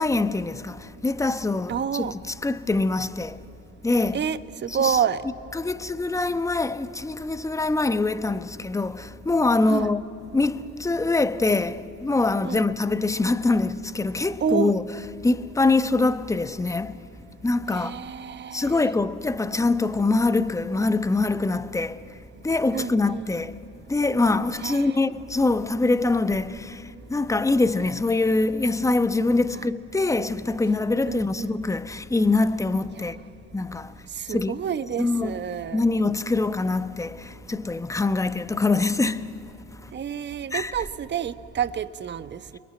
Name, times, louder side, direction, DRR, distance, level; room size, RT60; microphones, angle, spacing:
voice 1, 0.0-3.4 3.8-4.2 4.7-5.0 5.5-10.0 10.3-14.8 15.2-16.9 17.4-17.9 18.5-22.0 22.4-23.6 23.9-26.8 27.1-33.2 33.5-33.9 34.3-34.5 35.0-35.4 35.7-39.3 40.5-40.7, left 3 dB, 10° left, 0.9 m, -24 dB
voice 2, 1.7-2.1 4.1-5.2 9.7-9.9 12.4-12.6 14.4-14.7 17.7-18.9 22.7-23.3 24.6-25.0 29.5-29.7 31.1-31.5 33.0-33.1 34.1-35.9 39.9-42.6, right 8 dB, 30° right, 1.1 m, -29 dB
29.5 x 21.5 x 9.4 m
hypercardioid pair, 75°, 34 cm